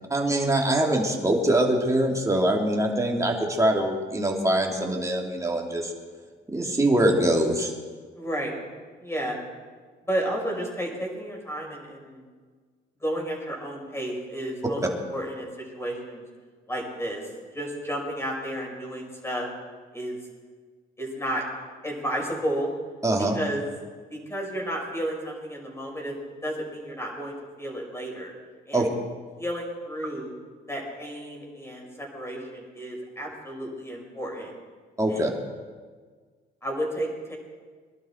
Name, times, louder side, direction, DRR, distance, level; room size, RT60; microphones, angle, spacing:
voice 1, 0.1-5.9 6.5-7.7 23.0-23.4 28.7-28.9 35.0-35.3, right 1 dB, 15° right, 0 dB, 2.8 m, -23 dB
voice 2, 8.1-8.5 9.0-9.4 10.0-12.2 13.0-16.2 16.7-17.2 17.5-19.5 19.9-20.2 21.0-21.4 21.8-22.7 23.3-23.6 24.1-26.2 26.4-28.3 28.7-29.0 29.4-30.3 30.7-34.5 35.1-35.3 36.6-37.3, equal, 15° left, -1 dB, 6.0 m, -32 dB
23.0 x 12.0 x 4.6 m, 1.5 s
cardioid pair, 90°, 20 cm